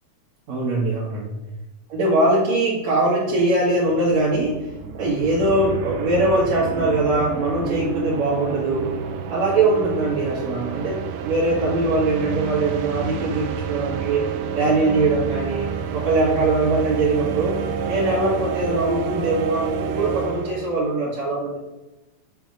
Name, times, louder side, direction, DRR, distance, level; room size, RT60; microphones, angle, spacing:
voice 1, 0.5-1.4 1.9-4.6 5.0-8.9 9.3-14.2 14.5-15.7 15.9-17.5 17.9-21.6, right 2 dB, 65° right, -6 dB, 2.5 m, -21 dB
sound 1, 3.4-20.9, right 6 dB, 85° right, 2.1 m, -29 dB
8.3 x 3.3 x 5.1 m, 1.0 s
omnidirectional pair, 3.5 m